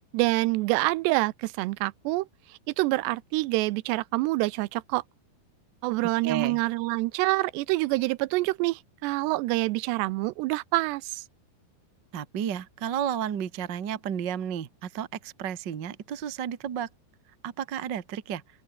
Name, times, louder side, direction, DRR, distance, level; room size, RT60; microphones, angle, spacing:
voice 1, 0.1-2.3 2.8-5.0 5.8-11.2, right 21 dB, 90° right, 2.9 m, -26 dB
voice 2, 6.2-6.6 12.1-16.9 17.4-18.4, right 9 dB, 65° right, 1.0 m, -32 dB
omnidirectional pair, 4.8 m